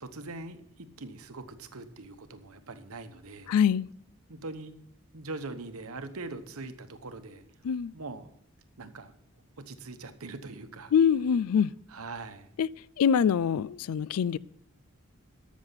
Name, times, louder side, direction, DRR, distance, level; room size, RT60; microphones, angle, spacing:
voice 1, 0.0-3.5 4.3-4.7 5.1-7.4 7.9-8.3 8.8-9.1 9.7-10.9 11.9-12.5, right 3 dB, 85° right, 1.0 m, -42 dB
voice 2, 3.5-3.9 7.6-7.9 10.9-11.7 12.6-12.7 13.0-14.4, left 7 dB, 85° left, 0.3 m, -24 dB
13.5 x 6.3 x 5.7 m
head